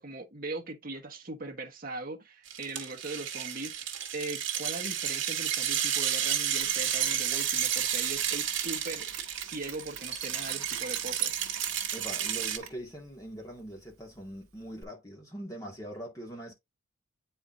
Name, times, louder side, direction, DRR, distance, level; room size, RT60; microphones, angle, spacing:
voice 1, 0.0-11.4, right 2 dB, 40° right, 1.2 m, -40 dB
sound 1, 2.5-12.6, right 9 dB, 60° right, 1.4 m, -31 dB
Mechanisms, 6.6-14.8, right 8 dB, 75° right, 1.0 m, -47 dB
voice 2, 11.9-16.5, right 1 dB, 15° left, 2.1 m, -42 dB
8.6 x 4.5 x 2.6 m
head